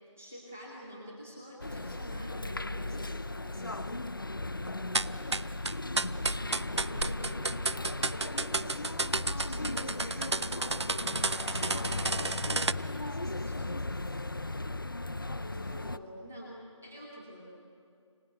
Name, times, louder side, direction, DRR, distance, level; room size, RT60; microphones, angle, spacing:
voice 1, 0.2-4.0 4.6-5.4 6.3-7.7 8.1-10.8 11.2-14.2 15.4-17.4, equal, 5° right, -4 dB, 0.7 m, -48 dB
sound 1, 1.6-16.0, left 2 dB, 45° left, 0.5 m, -36 dB
sound 2, 4.9-12.7, right 3 dB, 60° right, 0.4 m, -31 dB
25.0 x 18.5 x 7.9 m, 2.4 s
figure-of-eight pair, 165°, 17 cm